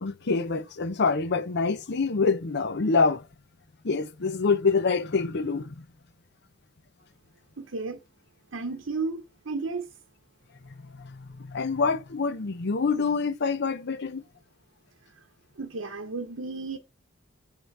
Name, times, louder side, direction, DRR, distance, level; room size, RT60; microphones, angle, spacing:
voice 1, 0.0-3.3 3.8-5.8 10.6-14.2, left 4 dB, 60° left, 0.7 m, -26 dB
voice 2, 7.6-8.0 8.5-9.9 15.6-16.8, right 3 dB, 80° right, 0.8 m, -33 dB
9.0 x 3.7 x 4.7 m
head